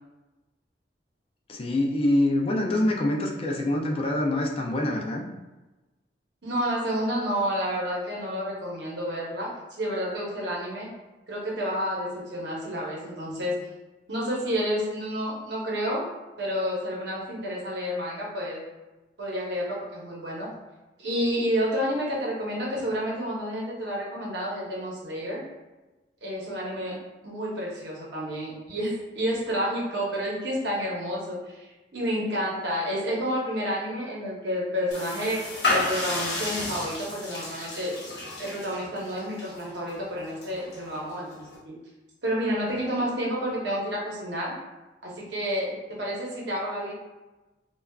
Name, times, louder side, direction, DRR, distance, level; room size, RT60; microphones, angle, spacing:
voice 1, 1.5-5.3, left 1 dB, 30° left, 0 dB, 0.3 m, -25 dB
voice 2, 6.4-9.5 9.8-10.9 11.3-13.6 14.1-16.1 16.4-18.6 19.2-20.5 21.0-25.4 26.2-26.9 27.2-37.9 38.4-41.8 42.2-44.5 45.0-46.9, equal, 75° right, -4 dB, 0.9 m, -30 dB
sound 1, 34.9-41.6, left 2 dB, 70° left, 0.9 m, -32 dB
3.3 x 2.3 x 2.3 m, 1.1 s
head